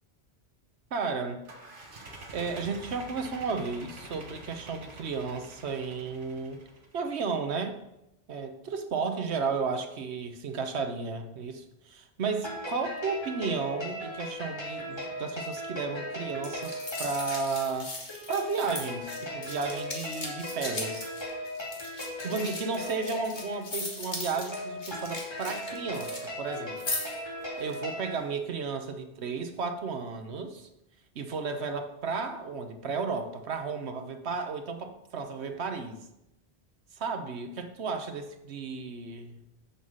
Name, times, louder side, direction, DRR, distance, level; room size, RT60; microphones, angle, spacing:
voice 1, 0.9-1.4 2.3-6.6 6.9-7.8 8.3-17.9 18.3-21.1 22.2-27.0 27.6-30.7 31.1-36.0 36.9-39.4, right 4 dB, 90° right, 7 dB, 1.2 m, -33 dB
sound 1, 1.4-7.0, right 2 dB, 55° right, 1.4 m, -47 dB
sound 2, 12.3-28.1, left 1 dB, 25° left, 2.1 m, -38 dB
sound 3, 16.4-26.3 26.5-27.2 27.6-27.7, left 2 dB, 45° left, 1.7 m, -38 dB
7.1 x 5.6 x 6.3 m, 0.88 s
omnidirectional pair, 1.1 m